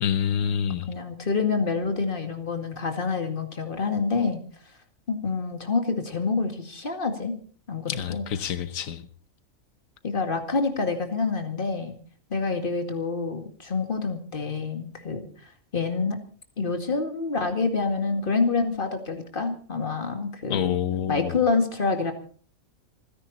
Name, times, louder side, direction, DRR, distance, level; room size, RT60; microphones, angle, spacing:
voice 1, 0.0-0.9 7.9-9.0 20.5-21.4, left 8 dB, 90° left, 1.3 m, -27 dB
voice 2, 0.9-4.4 5.1-7.4 7.7-8.2 10.0-12.0 12.3-15.3 15.7-16.2 16.6-20.8 21.1-22.1, left 4 dB, 40° left, 2.3 m, -27 dB
27.0 x 10.5 x 4.2 m
omnidirectional pair, 1.4 m